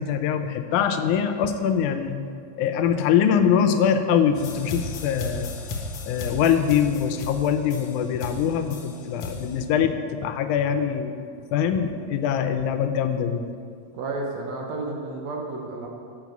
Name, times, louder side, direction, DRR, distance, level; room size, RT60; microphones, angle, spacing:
voice 1, 0.0-2.2 2.6-5.5 6.0-11.2 11.5-13.4, left 8 dB, 85° left, 8 dB, 2.1 m, -23 dB
sound 1, 4.4-9.6, left 3 dB, 70° left, 1.6 m, -35 dB
voice 2, 13.9-15.9, right 3 dB, 70° right, 0 dB, 2.0 m, -31 dB
8.1 x 6.3 x 6.0 m, 2.4 s
omnidirectional pair, 3.5 m